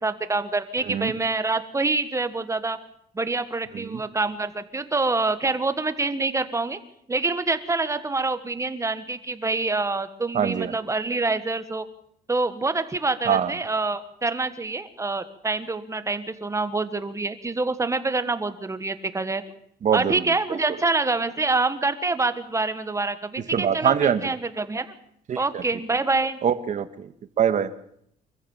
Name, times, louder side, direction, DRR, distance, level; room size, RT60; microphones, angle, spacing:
voice 1, 0.0-2.8 3.1-6.8 7.1-11.9 12.3-19.4 19.9-24.9 25.4-26.4, right 3 dB, 15° right, 11 dB, 1.4 m, -26 dB
voice 2, 10.3-10.7 13.2-13.5 19.8-20.6 23.5-24.3 25.3-25.6 26.4-27.1 27.4-27.7, right 8 dB, 45° right, 11 dB, 1.5 m, -24 dB
25.0 x 15.0 x 7.3 m, 0.70 s
cardioid pair, 125°, 17 cm